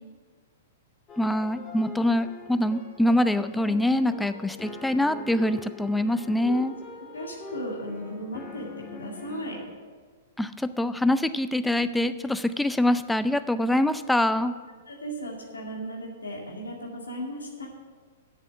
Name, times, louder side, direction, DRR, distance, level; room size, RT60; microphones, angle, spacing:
sound 1, 1.1-9.7, left 2 dB, 25° left, 1.7 m, -43 dB
voice 1, 1.2-6.7 10.4-14.5, left 1 dB, 5° left, 12 dB, 0.4 m, -24 dB
voice 2, 7.0-8.7 8.9-9.6 14.9-17.7, equal, 80° left, 0 dB, 2.1 m, -36 dB
8.3 x 7.1 x 7.6 m, 1.5 s
figure-of-eight pair, 110°, 0 cm